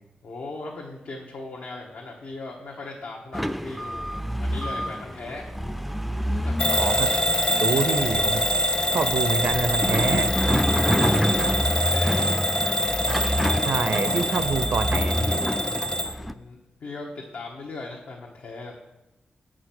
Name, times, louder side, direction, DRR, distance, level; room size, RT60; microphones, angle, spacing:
voice 1, 0.2-5.5 6.4-6.9 10.7-12.3 16.0-18.7, left 3 dB, 80° left, -2 dB, 1.0 m, -38 dB
sound 1, 3.3-16.3, equal, ahead, 0.3 m, -28 dB
Bell / Alarm, 6.6-16.1, equal, 35° left, 0.7 m, -25 dB
voice 2, 6.8-7.1 7.5-8.4 8.9-10.3 13.6-15.5, right 4 dB, 70° right, 11 dB, 0.5 m, -26 dB
7.5 x 5.0 x 5.9 m, 0.95 s
cardioid pair, 65°, 3 cm